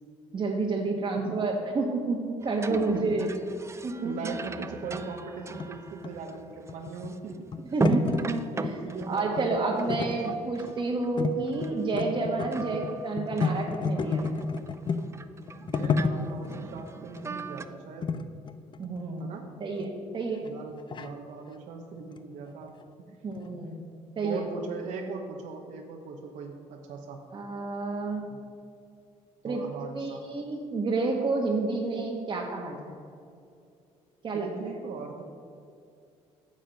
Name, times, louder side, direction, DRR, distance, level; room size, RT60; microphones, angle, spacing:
voice 1, 0.3-3.3 3.8-4.3 7.7-8.8 9.1-14.2 18.8-19.3 19.6-20.4 23.2-23.7 24.2-24.5 27.3-28.2 29.4-29.6 29.9-32.9 34.2-34.5, right 3 dB, 40° right, -2 dB, 1.2 m, -30 dB
sound 1, 2.4-7.4 7.7-11.2 11.5-12.2 12.5-17.6, right 3 dB, 20° right, 0.5 m, -37 dB
voice 2, 2.7-3.3 4.0-7.5 7.8-7.9 8.5-10.2 15.6-18.2 19.2-19.4 20.4-23.2 23.5-23.6 24.2-27.2 29.4-30.2 34.3-35.2, right 4 dB, 75° right, 1 dB, 0.9 m, -39 dB
sound 2, 4.6-8.7 9.0-9.6 9.9-10.8 11.2-11.4 11.6-15.1 15.5-16.6 17.2-17.4 18.0-19.2 19.8-19.9 20.5-21.1 22.0-22.2 22.5-22.6 22.8-22.9 23.3-23.5, left 5 dB, 40° left, 0.6 m, -31 dB
9.0 x 7.3 x 5.2 m, 2.4 s
cardioid pair, 90°, 13 cm